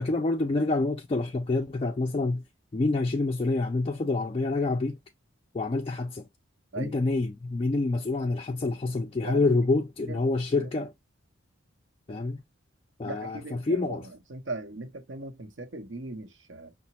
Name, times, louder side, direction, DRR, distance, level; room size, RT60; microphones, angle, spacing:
voice 1, 0.0-2.5 2.7-5.0 5.5-6.3 6.8-10.9 12.1-12.4 13.0-14.1, left 3 dB, 30° left, 0.3 m, -27 dB
voice 2, 13.0-16.7, right 2 dB, 70° right, 0.8 m, -39 dB
5.8 x 2.1 x 2.8 m
head